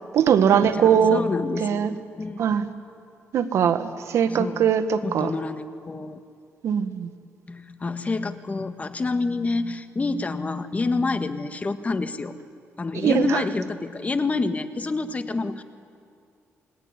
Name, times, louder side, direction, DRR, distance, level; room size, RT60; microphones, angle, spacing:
voice 1, 0.1-1.2 1.6-1.9 2.4-2.7 3.3-5.3 6.6-7.1 12.9-13.4, right 8 dB, 75° right, 10 dB, 1.5 m, -21 dB
voice 2, 0.8-2.5 4.3-4.7 5.0-6.2 7.5-12.3 12.8-15.6, left 3 dB, 30° left, 9 dB, 1.7 m, -28 dB
28.5 x 20.0 x 9.8 m, 2.4 s
cardioid pair, 85°, 5 cm